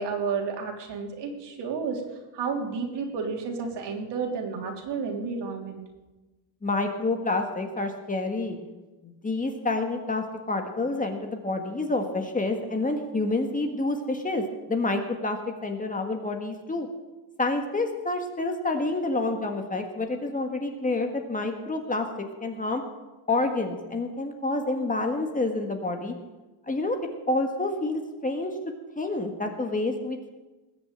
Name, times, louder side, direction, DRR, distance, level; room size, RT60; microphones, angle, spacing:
voice 1, 0.0-2.0 2.3-5.8, right 5 dB, 65° right, 2 dB, 3.2 m, -31 dB
voice 2, 6.6-8.6 9.0-16.9 17.4-22.8 23.3-26.1 26.7-27.0 27.3-28.5 29.0-30.3, left 2 dB, 20° left, 4 dB, 1.6 m, -28 dB
20.0 x 6.8 x 8.9 m, 1.1 s
cardioid pair, 140°, 45 cm